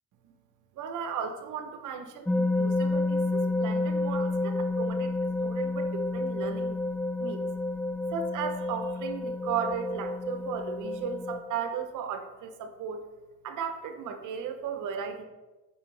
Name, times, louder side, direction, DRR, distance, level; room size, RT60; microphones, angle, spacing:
voice 1, 0.8-6.8 7.2-7.4 8.1-13.1 13.4-15.2, right 7 dB, 85° right, 7 dB, 0.9 m, -36 dB
sound 1, 2.3-11.4, left 2 dB, 5° left, 0.4 m, -29 dB
8.9 x 5.1 x 3.4 m, 1.1 s
cardioid pair, 90°, 30 cm